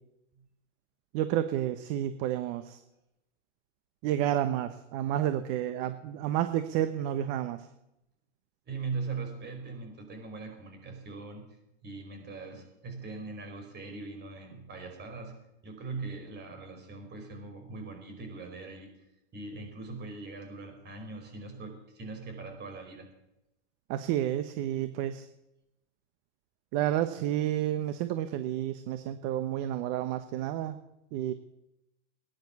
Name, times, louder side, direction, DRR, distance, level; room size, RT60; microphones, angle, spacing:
voice 1, 1.1-2.8 4.0-7.7 23.9-25.3 26.7-30.8 31.1-31.3, right 12 dB, 50° right, 10 dB, 1.2 m, -30 dB
voice 2, 8.6-11.4 11.8-15.4 15.6-18.9 19.3-23.1, right 4 dB, 30° right, 4 dB, 5.0 m, -41 dB
19.0 x 10.5 x 7.1 m, 0.88 s
supercardioid pair, 125°, 36 cm